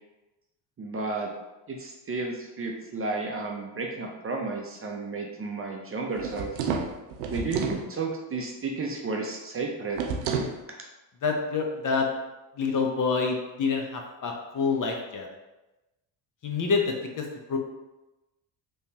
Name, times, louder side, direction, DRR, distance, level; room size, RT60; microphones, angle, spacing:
voice 1, 0.8-1.3 1.7-6.5 7.3-10.0, right 3 dB, 30° right, 0 dB, 0.6 m, -32 dB
sound 1, 6.2-7.8 9.9-10.6, right 5 dB, 85° right, 0.6 m, -30 dB
voice 2, 11.2-12.1 12.6-15.3 16.4-17.6, left 4 dB, 40° left, 1 dB, 0.7 m, -27 dB
3.3 x 3.0 x 2.8 m, 1.0 s
hypercardioid pair, 65°, 49 cm